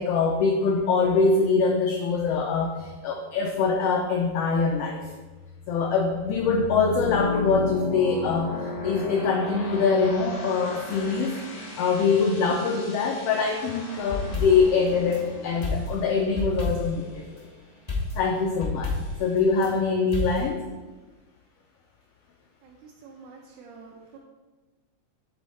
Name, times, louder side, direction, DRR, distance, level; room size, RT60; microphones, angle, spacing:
voice 1, 0.0-5.0 5.7-11.4 11.8-17.5 18.1-20.6, left 4 dB, 85° left, 2 dB, 1.3 m, -24 dB
sound 1, 5.0-17.6, left 4 dB, 50° left, 1.4 m, -35 dB
sound 2, 14.0-15.2 15.6-17.1 17.9-19.7 20.1-20.5, left 3 dB, 70° left, 0.3 m, -31 dB
voice 2, 22.6-24.2, right 5 dB, 85° right, -1 dB, 2.1 m, -48 dB
8.0 x 4.2 x 4.1 m, 1.2 s
omnidirectional pair, 3.4 m